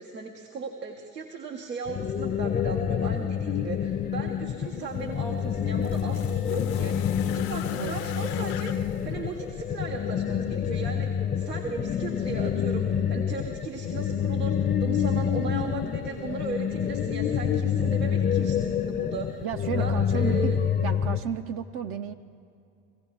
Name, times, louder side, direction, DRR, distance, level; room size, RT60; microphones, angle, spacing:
voice 1, 0.0-19.4 19.8-20.6, right 5 dB, 90° right, 2 dB, 1.1 m, -37 dB
sound 1, 1.9-21.2, left 8 dB, 20° left, 0.6 m, -27 dB
sound 2, 4.8-10.0 11.1-11.2, left 12 dB, 60° left, 0.7 m, -41 dB
voice 2, 19.4-20.5 20.8-22.1, right 8 dB, 30° right, 9 dB, 0.4 m, -33 dB
18.0 x 15.5 x 4.7 m, 2.6 s
hypercardioid pair, 80°, 48 cm